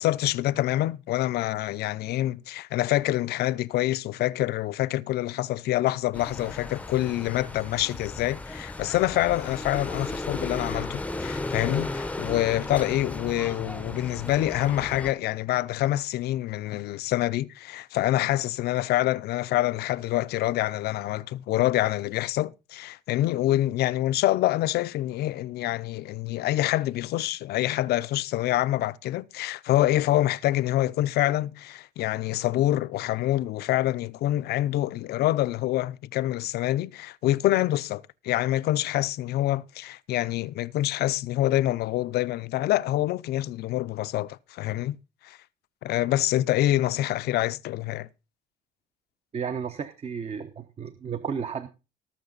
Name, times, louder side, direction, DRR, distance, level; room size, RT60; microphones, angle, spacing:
voice 1, 0.0-45.0 45.2-45.4 45.8-48.1, left 15 dB, 70° left, 0.6 m, -26 dB
sound 1, 6.1-15.1, left 2 dB, 10° left, 0.7 m, -35 dB
voice 2, 49.3-51.7, right 6 dB, 35° right, 1.0 m, -33 dB
18.5 x 6.6 x 4.0 m
cardioid pair, 110°, 17 cm